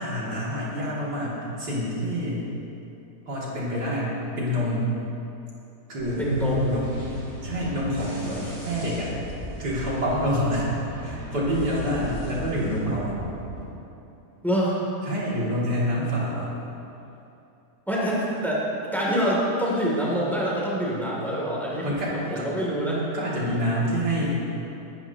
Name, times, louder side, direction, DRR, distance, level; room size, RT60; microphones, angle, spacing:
voice 1, 0.0-2.4 3.3-4.9 5.9-6.2 6.6-7.0 7.4-9.1 9.6-10.7 11.0-13.2 15.1-16.5 21.8-22.5 23.1-24.4, equal, 80° right, -7 dB, 3.5 m, -27 dB
sound 1, 6.0-13.6, right 2 dB, 50° right, 3.4 m, -37 dB
voice 2, 6.2-6.8 14.4-14.8 17.9-23.0, equal, ahead, -6 dB, 3.0 m, -25 dB
20.0 x 12.0 x 3.1 m, 2.9 s
omnidirectional pair, 1.7 m